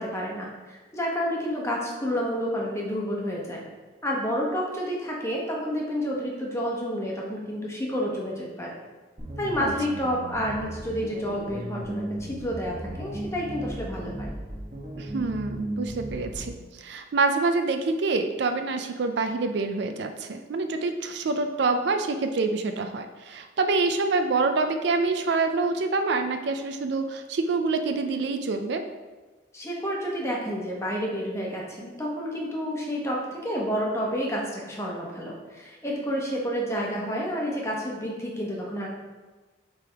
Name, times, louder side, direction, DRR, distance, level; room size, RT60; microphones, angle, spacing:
voice 1, 0.0-3.6 4.0-8.8 9.4-14.3 29.5-38.9, equal, 15° left, -2 dB, 1.0 m, -30 dB
sound 1, 9.2-16.6, right 1 dB, 40° right, 1.1 m, -36 dB
voice 2, 15.0-28.8, right 3 dB, 60° right, 7 dB, 0.4 m, -26 dB
8.2 x 3.4 x 3.4 m, 1.3 s
head